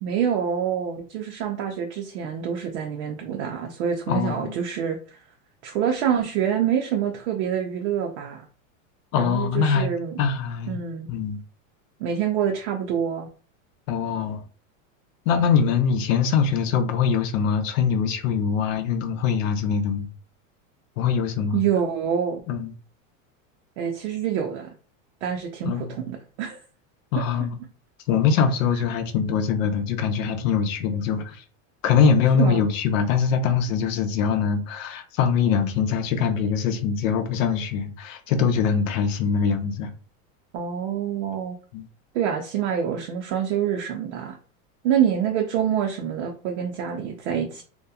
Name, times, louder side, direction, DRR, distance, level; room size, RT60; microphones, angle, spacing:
voice 1, 0.0-5.2 5.6-8.4 9.1-10.2 10.7-11.1 12.0-13.3 21.5-22.4 23.8-24.7 25.2-26.6 27.1-27.2 32.4-32.7 40.5-41.6 42.1-44.4 44.8-47.6, right 8 dB, 60° right, 0.5 m, -26 dB
voice 2, 4.1-4.5 9.1-9.9 10.2-10.8 11.1-11.4 13.9-14.4 15.3-20.1 21.0-21.6 22.5-22.7 25.6-25.9 27.1-27.6 28.1-31.4 31.8-39.9 41.7-41.9, left 6 dB, 75° left, 0.7 m, -23 dB
2.7 x 2.1 x 2.3 m
supercardioid pair, 155°, 40 cm